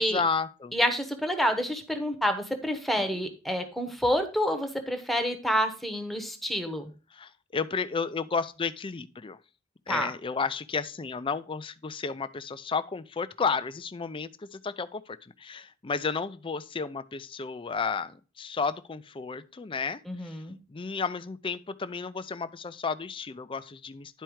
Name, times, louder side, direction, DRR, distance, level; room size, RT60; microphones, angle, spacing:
voice 1, 0.0-0.8 3.0-3.2 7.1-9.4 9.9-20.4 20.7-24.2, left 5 dB, 25° left, 0.4 m, -32 dB
voice 2, 0.7-6.8 9.9-10.1 20.1-20.6, equal, ahead, 1.0 m, -28 dB
10.5 x 4.5 x 4.6 m
head